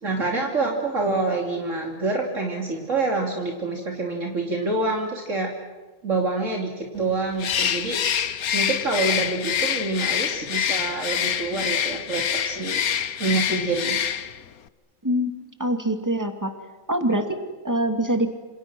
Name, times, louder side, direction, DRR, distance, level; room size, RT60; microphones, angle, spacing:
voice 1, 0.0-5.5 6.0-8.0 8.5-12.8 13.2-14.0, right 3 dB, 60° right, 1 dB, 3.3 m, -26 dB
Bird, 7.4-14.5, left 9 dB, 80° left, 1.5 m, -26 dB
voice 2, 15.0-16.6 16.9-18.3, equal, 10° right, 6 dB, 2.6 m, -24 dB
28.0 x 27.5 x 6.3 m, 1.2 s
omnidirectional pair, 1.5 m